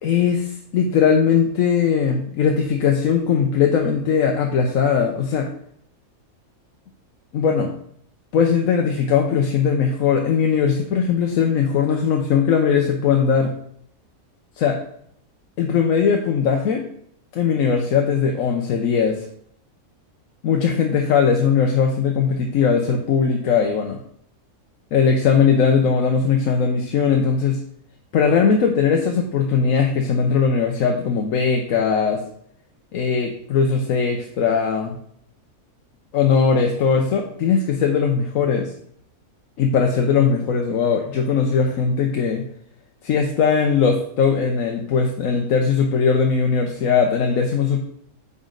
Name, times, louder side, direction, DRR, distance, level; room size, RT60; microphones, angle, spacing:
voice 1, 0.0-5.5 7.3-7.7 8.3-13.5 14.6-14.8 15.6-16.8 17.3-19.2 20.4-24.0 24.9-27.6 28.1-32.2 32.9-35.0 36.1-38.7 39.6-42.4 43.0-47.8, left 6 dB, 70° left, 2 dB, 1.1 m, -19 dB
8.9 x 4.1 x 3.8 m, 0.67 s
omnidirectional pair, 1.5 m